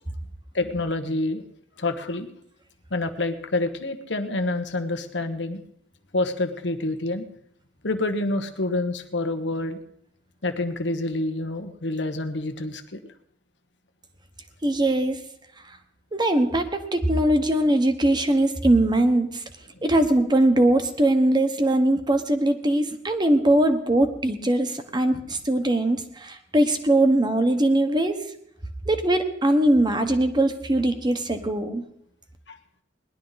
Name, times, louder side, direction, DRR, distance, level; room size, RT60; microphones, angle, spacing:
voice 1, 0.5-1.4 1.8-2.3 2.9-5.6 6.1-7.2 7.8-9.8 10.4-13.0 32.5-32.6, left 2 dB, 75° left, 7 dB, 1.2 m, -27 dB
voice 2, 14.6-15.2 16.1-19.4 19.8-28.2 28.9-31.8, right 1 dB, 25° right, 7 dB, 1.2 m, -21 dB
19.5 x 11.5 x 4.0 m, 0.69 s
head